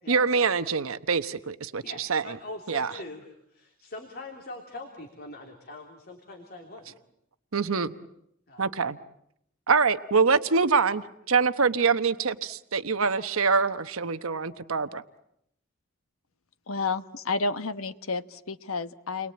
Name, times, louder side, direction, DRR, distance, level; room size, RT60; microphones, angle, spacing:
voice 1, 0.1-2.4 2.7-2.9 7.5-7.9 8.6-9.0 9.7-15.0, right 5 dB, 80° right, 11 dB, 1.0 m, -25 dB
voice 2, 1.8-6.8 8.5-8.7, left 2 dB, 45° left, 2 dB, 3.2 m, -42 dB
voice 3, 16.7-19.3, left 3 dB, 85° left, 12 dB, 1.2 m, -31 dB
30.0 x 22.0 x 8.8 m, 0.77 s
head